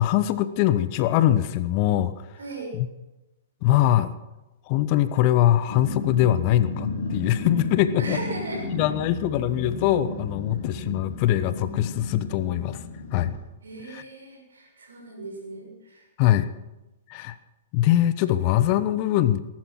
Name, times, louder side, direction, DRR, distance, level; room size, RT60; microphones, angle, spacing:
voice 1, 0.0-2.3 2.7-2.9 3.6-4.1 4.7-8.2 8.7-12.8 13.1-13.3 13.9-14.0 16.2-16.5 17.1-17.4 17.7-19.4, left 13 dB, 45° left, 13 dB, 1.0 m, -22 dB
voice 2, 2.4-2.7 8.0-8.6 13.6-16.5, right 3 dB, 75° right, 1 dB, 6.5 m, -37 dB
Growling, 5.7-13.4, left 2 dB, 60° left, 4.9 m, -33 dB
20.0 x 12.0 x 5.9 m, 0.99 s
hypercardioid pair, 115°, 0 cm